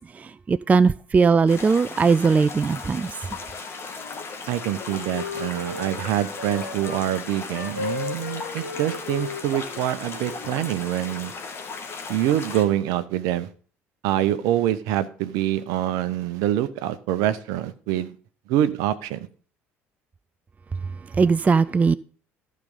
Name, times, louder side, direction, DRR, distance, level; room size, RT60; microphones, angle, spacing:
voice 1, 0.1-3.1 21.1-22.0, right 5 dB, 20° right, 0.3 m, -19 dB
sound 1, 1.5-12.6, left 4 dB, 35° left, 2.3 m, -37 dB
Wind instrument woodwind instrument, 3.9-7.0 7.5-10.7, left 5 dB, 80° left, 1.1 m, -36 dB
voice 2, 4.5-11.3 12.1-13.5 14.0-18.2 18.5-19.3, right 12 dB, 60° right, 0.8 m, -25 dB
13.5 x 5.1 x 5.4 m
figure-of-eight pair, 55°, 7 cm